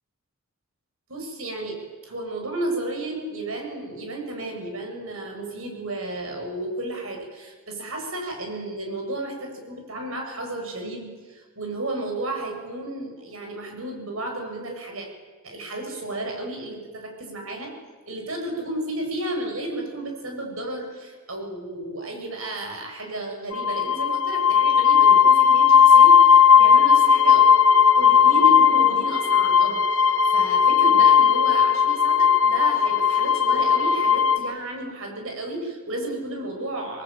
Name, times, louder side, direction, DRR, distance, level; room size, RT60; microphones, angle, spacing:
voice 1, 1.1-15.1 15.4-17.7 18.1-27.4 28.0-37.0, right 1 dB, 70° right, 3 dB, 7.3 m, -33 dB
sound 1, 23.5-34.4, left 7 dB, 65° left, 2.3 m, -16 dB
29.5 x 21.0 x 9.1 m, 1.4 s
head